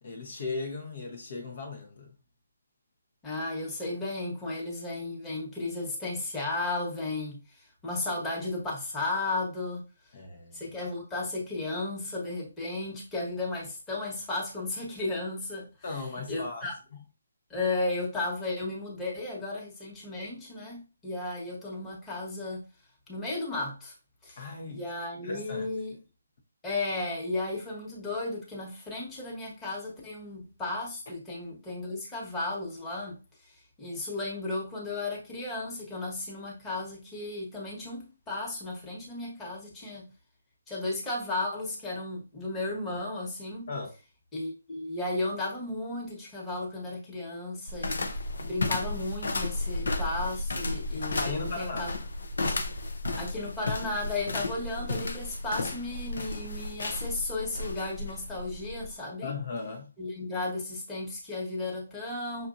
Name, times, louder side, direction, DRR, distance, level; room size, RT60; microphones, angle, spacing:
voice 1, 0.0-2.2 10.1-10.6 15.8-16.7 24.3-24.8 25.2-25.7 43.7-43.9 51.2-51.9 59.2-59.9, left 3 dB, 50° left, 0.9 m, -37 dB
voice 2, 3.2-9.9 10.5-15.7 16.3-16.7 17.5-22.6 23.1-23.9 24.2-24.4 24.7-26.0 26.6-33.2 33.8-40.1 40.7-43.7 44.3-48.1 48.4-52.0 53.1-59.3 60.0-62.5, left 2 dB, 10° left, 1.3 m, -34 dB
sound 1, 47.7-58.9, left 2 dB, 75° left, 0.7 m, -33 dB
5.9 x 2.6 x 2.5 m
hypercardioid pair, 155°, 0 cm